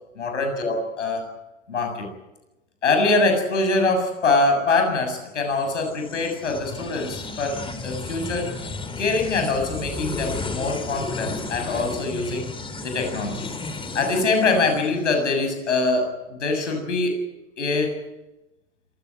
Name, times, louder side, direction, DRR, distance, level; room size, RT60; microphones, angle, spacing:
voice 1, 0.2-1.4 1.7-2.1 2.8-8.5 9.0-12.5 12.8-13.5 13.9-17.2 17.6-18.0, left 3 dB, 85° left, 6 dB, 7.5 m, -23 dB
sound 1, 5.5-15.2, left 3 dB, 15° left, 3.3 m, -33 dB
26.5 x 16.0 x 9.1 m, 0.98 s
hypercardioid pair, 100°, 35 cm